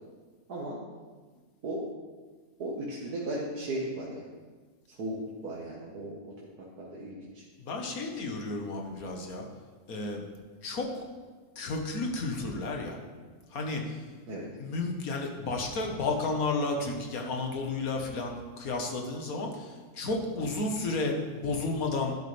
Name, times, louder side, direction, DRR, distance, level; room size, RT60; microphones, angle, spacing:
voice 1, 2.6-4.2 4.9-5.2 5.4-6.3 6.6-7.4 14.3-14.5, right 1 dB, 80° right, -5 dB, 1.9 m, -36 dB
voice 2, 7.6-9.5 9.9-10.2 10.6-11.0 11.6-13.0 13.5-14.0 14.6-22.2, left 3 dB, 70° left, 2 dB, 1.8 m, -32 dB
11.5 x 10.5 x 3.4 m, 1.4 s
omnidirectional pair, 1.6 m